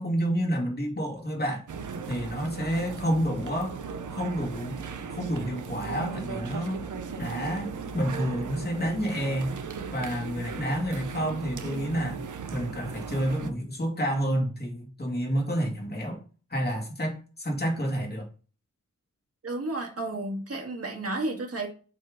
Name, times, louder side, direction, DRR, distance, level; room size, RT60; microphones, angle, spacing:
voice 1, 0.0-1.7 2.1-3.8 4.1-4.8 5.1-6.8 7.2-9.6 9.9-12.2 12.5-16.2 16.5-18.3, equal, 30° left, 0 dB, 2.4 m, -29 dB
sound 1, 1.7-13.5, right 5 dB, 75° right, 0.8 m, -37 dB
voice 2, 19.4-21.7, right 2 dB, 50° right, 1 dB, 2.0 m, -32 dB
7.6 x 4.4 x 3.8 m, 0.37 s
wide cardioid pair, 120°, 30 cm